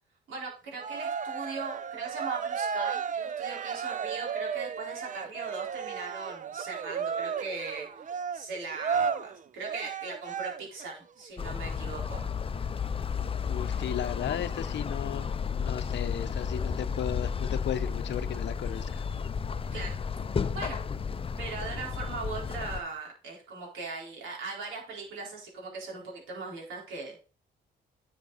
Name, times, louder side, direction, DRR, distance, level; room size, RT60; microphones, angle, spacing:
voice 1, 0.3-7.9 8.3-12.3 19.7-20.0 20.5-20.8 21.4-27.2, right 4 dB, 75° right, 4.1 m, -39 dB
Cheering, 0.8-10.8, right 6 dB, 40° right, 0.6 m, -34 dB
sound 1, 11.4-22.8, left 6 dB, 30° left, 0.5 m, -32 dB
voice 2, 13.5-19.0, left 10 dB, 65° left, 0.8 m, -35 dB
10.5 x 6.3 x 4.0 m
cardioid pair, 90°, 20 cm